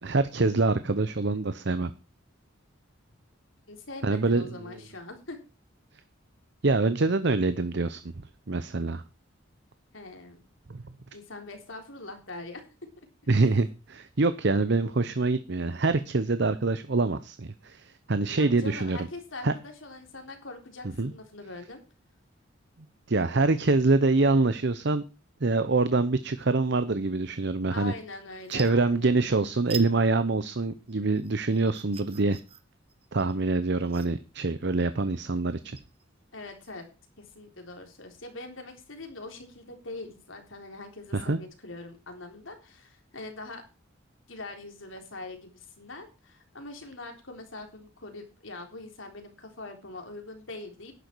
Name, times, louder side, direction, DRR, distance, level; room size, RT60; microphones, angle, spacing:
voice 1, 0.0-1.9 4.0-4.8 6.6-9.0 10.7-10.8 13.3-19.1 19.4-19.5 21.0-21.1 23.1-25.0 25.4-27.9 28.5-32.4 33.1-35.8 41.1-41.4, right 3 dB, 60° right, 12 dB, 0.8 m, -25 dB
voice 2, 3.7-5.4 9.9-10.4 11.1-12.6 18.4-21.8 27.7-29.1 36.3-36.9 37.2-43.6 44.3-50.9, left 2 dB, 80° left, 4 dB, 3.8 m, -43 dB
sound 1, 28.0-28.1 28.3-29.3 29.7-29.9 30.3-36.9, right 7 dB, 30° right, 1.4 m, -45 dB
12.0 x 10.5 x 4.7 m, 0.31 s
head